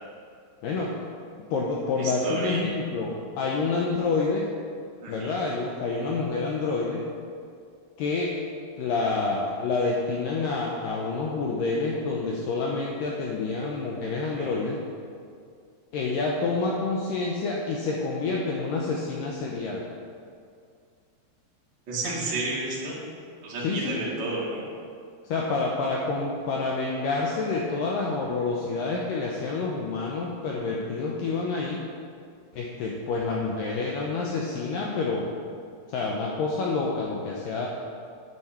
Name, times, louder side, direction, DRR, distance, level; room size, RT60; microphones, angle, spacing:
voice 1, 0.6-1.0 1.5-4.5 5.1-7.1 8.0-8.4 8.8-14.8 15.9-19.9 23.6-24.1 25.2-31.8 32.5-35.3 35.9-37.7, left 3 dB, 90° left, -2 dB, 1.9 m, -28 dB
voice 2, 2.0-2.6 5.0-5.4 14.3-14.6 21.9-23.0 23.4-24.6, right 2 dB, 40° right, -6 dB, 1.7 m, -31 dB
9.5 x 7.9 x 4.3 m, 2.3 s
omnidirectional pair, 4.9 m